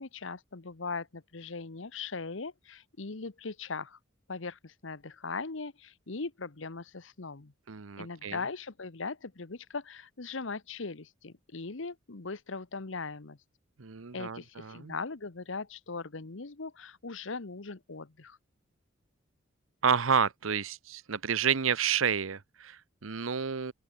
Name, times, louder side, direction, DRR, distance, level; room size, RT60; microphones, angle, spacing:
voice 1, 0.0-4.0 4.3-7.5 8.0-13.4 14.1-18.4, left 4 dB, 70° left, 1.1 m, -39 dB
voice 2, 7.7-8.4 13.8-14.9 19.8-23.7, right 7 dB, 90° right, 0.9 m, -30 dB
open air
head